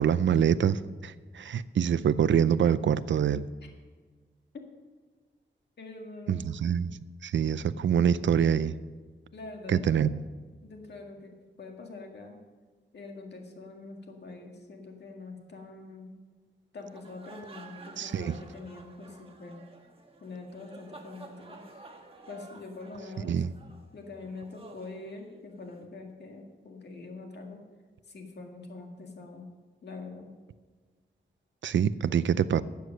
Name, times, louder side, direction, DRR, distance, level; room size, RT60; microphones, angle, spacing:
voice 1, 0.0-3.5 6.3-6.9 7.2-8.7 9.7-10.1 18.0-18.3 23.2-23.5 31.6-32.6, right 8 dB, 80° right, 16 dB, 0.5 m, -25 dB
voice 2, 5.8-6.5 9.3-10.1 10.6-12.4 12.9-16.1 16.7-19.6 20.2-21.6 22.3-23.4 23.9-27.6 28.0-29.5 29.8-30.3, left 3 dB, 65° left, 2 dB, 1.9 m, -44 dB
sound 1, 16.8-25.8, right 3 dB, 30° right, 1.3 m, -51 dB
12.5 x 8.2 x 6.4 m, 1.4 s
wide cardioid pair, 160°, 19 cm